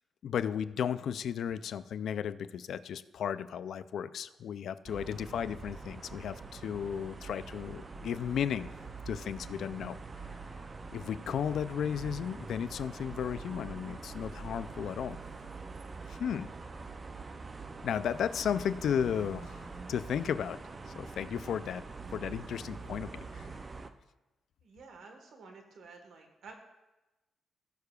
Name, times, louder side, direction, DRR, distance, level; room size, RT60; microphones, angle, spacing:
voice 1, 0.2-8.7 9.1-10.0 10.9-15.2 16.1-16.5 17.8-19.6 19.9-20.6 20.9-21.8 22.1-23.5, left 8 dB, 70° left, 15 dB, 0.3 m, -34 dB
sound 1, 4.9-23.9, right 4 dB, 30° right, 0.5 m, -44 dB
voice 2, 24.6-26.5, right 4 dB, 75° right, 4 dB, 1.4 m, -51 dB
17.5 x 6.7 x 2.3 m, 1.0 s
cardioid pair, 130°, 0 cm